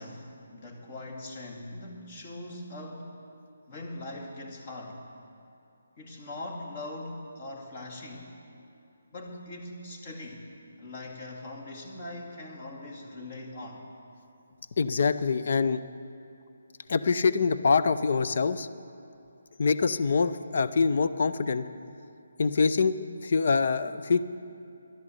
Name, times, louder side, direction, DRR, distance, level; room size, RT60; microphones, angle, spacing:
voice 1, 0.0-3.2 3.7-5.1 6.0-8.3 9.1-10.4 10.8-13.9, left 1 dB, 40° left, 1 dB, 2.3 m, -41 dB
voice 2, 14.8-15.8 16.9-18.7 19.6-21.7 22.4-24.2, left 4 dB, 60° left, 12 dB, 0.6 m, -25 dB
11.5 x 11.0 x 7.9 m, 2.7 s
figure-of-eight pair, 155°, 0 cm